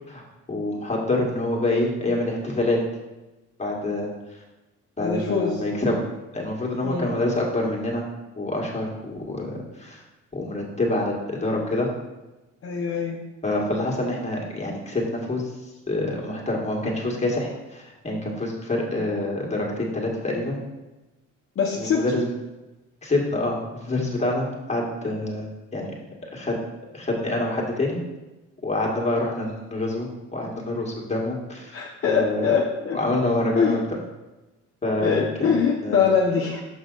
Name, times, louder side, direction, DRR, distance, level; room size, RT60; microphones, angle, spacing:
voice 1, 0.5-2.8 3.6-4.1 5.0-6.0 6.3-8.0 8.4-10.0 10.3-11.9 13.4-20.6 21.8-22.3 23.0-25.5 25.7-26.0 26.3-26.6 26.9-28.0 28.6-31.8 32.1-32.5 32.9-33.8 34.8-35.5 35.8-36.0, left 2 dB, 20° left, -1 dB, 1.8 m, -26 dB
voice 2, 5.0-5.6 6.8-7.1 12.6-13.2 21.6-22.0 31.7-33.0 33.5-33.8 35.0-36.6, left 6 dB, 45° left, -1 dB, 0.9 m, -23 dB
6.2 x 5.5 x 4.0 m, 1.1 s
cardioid pair, 90°, 30 cm